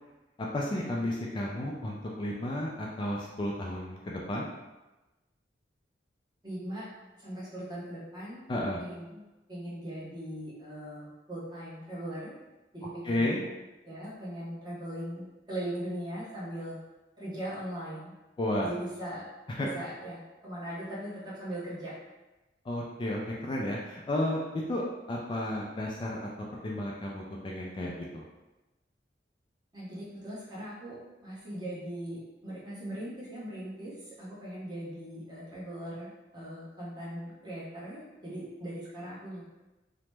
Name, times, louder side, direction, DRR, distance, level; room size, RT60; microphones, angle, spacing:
voice 1, 0.4-4.5 8.5-8.8 13.0-13.4 18.4-18.7 19.5-19.7 22.6-24.4 24.7-24.8 25.1-26.3 26.6-28.2, left 1 dB, 25° left, -3 dB, 0.3 m, -32 dB
voice 2, 6.4-6.9 7.2-8.5 8.8-9.2 9.5-12.3 12.7-13.5 13.8-16.8 17.2-18.1 18.6-19.3 19.6-22.0 29.7-39.4, right 1 dB, 25° right, -7 dB, 0.9 m, -40 dB
2.9 x 2.0 x 3.3 m, 1.1 s
head